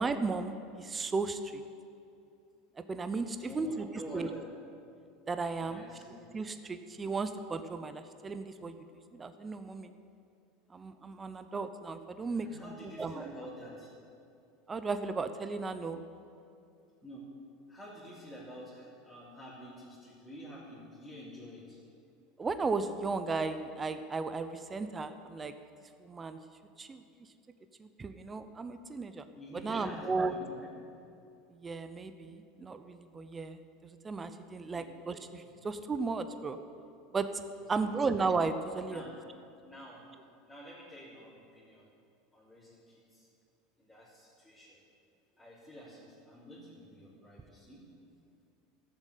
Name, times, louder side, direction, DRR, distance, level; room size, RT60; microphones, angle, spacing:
voice 1, 0.0-1.6 2.9-3.9 4.1-4.3 5.3-5.8 6.3-9.9 10.7-12.7 13.0-13.3 14.7-16.0 22.4-25.5 26.0-26.4 26.8-27.0 27.8-29.2 29.6-30.3 31.5-36.6 37.1-37.3 37.7-39.1, right 4 dB, 20° right, 9 dB, 0.7 m, -35 dB
voice 2, 3.4-4.5 5.6-6.3 12.3-13.9 17.0-17.3 17.7-21.8 29.3-30.7 34.7-34.9 37.6-37.8 38.9-39.2 39.6-40.0 40.5-41.9 42.3-43.3 43.8-44.8 45.3-47.9, equal, 5° left, -12 dB, 3.5 m, -48 dB
13.5 x 7.4 x 8.3 m, 2.6 s
supercardioid pair, 130°, 0 cm